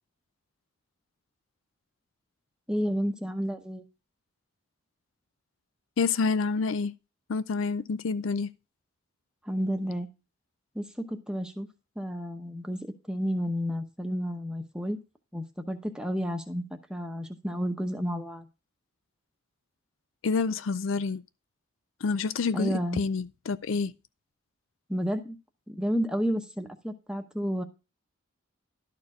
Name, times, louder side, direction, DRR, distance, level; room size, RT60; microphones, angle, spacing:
voice 1, 2.7-3.8 9.4-10.1 10.7-11.7 12.0-15.0 15.3-16.6 16.9-18.5 22.5-23.0 24.9-25.4 25.7-27.6, equal, 5° right, 0.8 m, -31 dB
voice 2, 6.0-6.9 7.3-8.5 20.2-21.2 22.0-23.9, left 4 dB, 70° left, 0.4 m, -28 dB
12.0 x 4.5 x 4.9 m
head